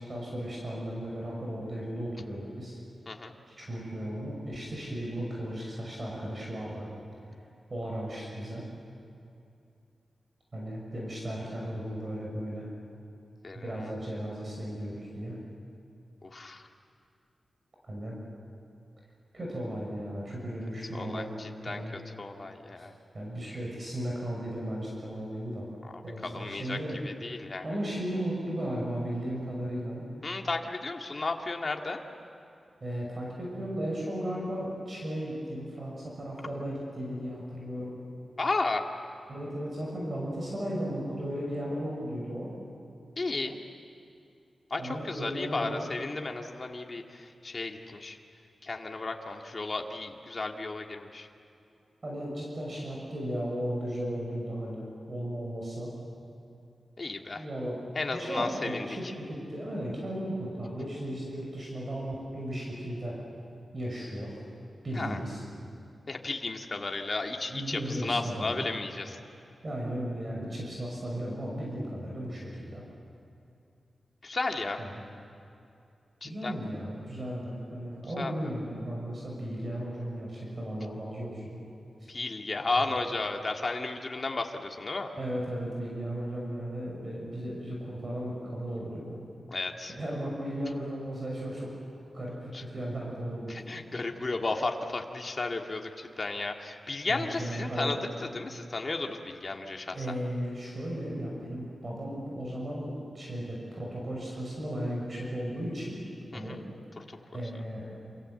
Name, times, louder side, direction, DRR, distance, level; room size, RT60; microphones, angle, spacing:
voice 1, 0.0-2.8 3.5-6.9 7.7-8.7 10.5-12.7 13.5-15.4 17.9-18.2 19.3-21.4 21.7-22.0 22.8-22.9 23.1-25.7 26.0-27.0 27.6-30.0 32.8-37.9 39.3-42.5 44.8-45.9 52.0-55.9 57.3-63.2 63.7-64.4 64.8-65.4 67.5-68.7 69.6-72.8 74.8-75.0 76.2-81.6 82.8-83.0 85.2-89.2 89.9-91.7 92.1-93.6 97.1-98.0 99.9-106.0 106.3-106.6 107.0-107.9, equal, 40° right, -3 dB, 6.3 m, -35 dB
voice 2, 16.2-16.6 20.9-22.9 25.9-26.8 27.0-27.7 30.2-32.0 38.4-38.8 43.2-43.6 44.7-48.2 48.6-51.3 57.0-57.4 57.9-58.9 64.9-65.2 66.1-69.2 74.2-74.8 76.2-76.5 78.2-78.3 82.1-85.1 89.5-89.9 92.5-92.6 93.5-98.0 98.3-100.0 106.3-106.6 107.0-107.1 107.3-107.4, left 3 dB, 40° left, 2 dB, 2.2 m, -34 dB
28.0 x 27.0 x 7.9 m, 2.6 s
wide cardioid pair, 115°, 0 cm